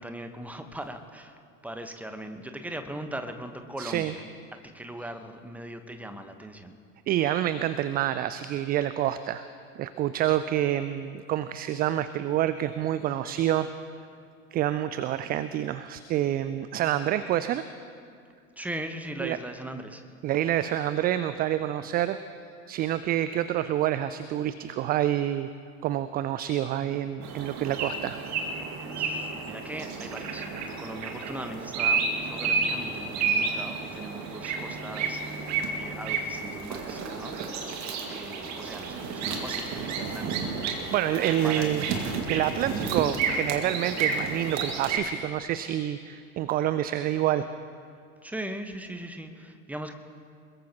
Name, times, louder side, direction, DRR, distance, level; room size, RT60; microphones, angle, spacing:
voice 1, 0.0-4.2 4.5-6.7 18.6-20.0 29.0-30.5 30.8-37.8 38.1-40.3 41.4-42.0 42.8-43.1 48.2-49.9, right 1 dB, 5° right, 7 dB, 1.2 m, -39 dB
voice 2, 3.8-4.1 7.1-9.4 9.8-13.7 14.5-17.6 19.2-19.4 20.2-22.2 22.7-25.5 25.8-28.2 40.9-41.8 42.3-47.5, right 12 dB, 25° right, 13 dB, 0.4 m, -27 dB
sound 1, 27.2-45.0, right 5 dB, 40° right, 2.1 m, -31 dB
22.0 x 21.5 x 3.0 m, 2.3 s
figure-of-eight pair, 70°, 41 cm